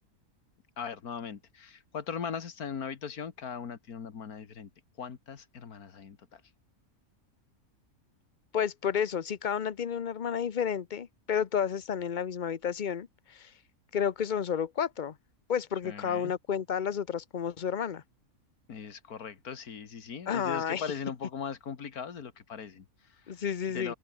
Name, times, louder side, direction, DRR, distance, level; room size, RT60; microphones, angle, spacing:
voice 1, 0.8-4.7 5.0-6.4 15.8-16.3 18.7-23.4 23.7-23.9, left 6 dB, 90° left, 2.1 m, -39 dB
voice 2, 8.5-13.5 13.9-15.2 15.5-18.0 20.3-20.8 23.3-23.9, left 8 dB, 40° left, 0.8 m, -31 dB
omnidirectional pair, 1.5 m